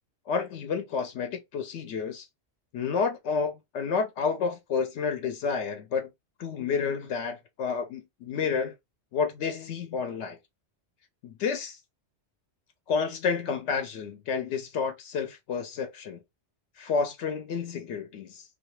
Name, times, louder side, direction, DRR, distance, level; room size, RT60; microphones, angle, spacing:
voice 1, 0.3-2.2 2.7-6.1 6.4-8.7 9.1-10.4 11.2-11.8 12.9-16.2 16.8-18.4, left 5 dB, 90° left, 0.9 m, -30 dB
2.3 x 2.3 x 3.0 m
omnidirectional pair, 1.1 m